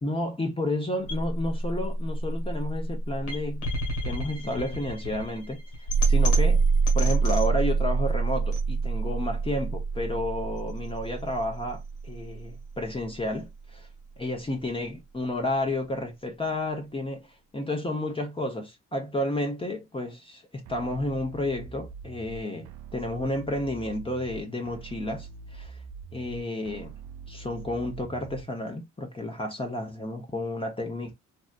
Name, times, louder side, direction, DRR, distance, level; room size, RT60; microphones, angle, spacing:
voice 1, 0.0-3.7 4.0-5.6 6.1-6.6 6.9-13.9 14.2-17.3 17.5-25.7 26.1-26.9 27.3-31.1, left 1 dB, 20° left, 0.8 m, -31 dB
sound 1, 1.1-13.1, right 4 dB, 85° left, 1.4 m, -26 dB
sound 2, 20.7-28.7, right 6 dB, 75° right, 0.5 m, -44 dB
3.2 x 2.7 x 2.4 m
cardioid pair, 90°, 30 cm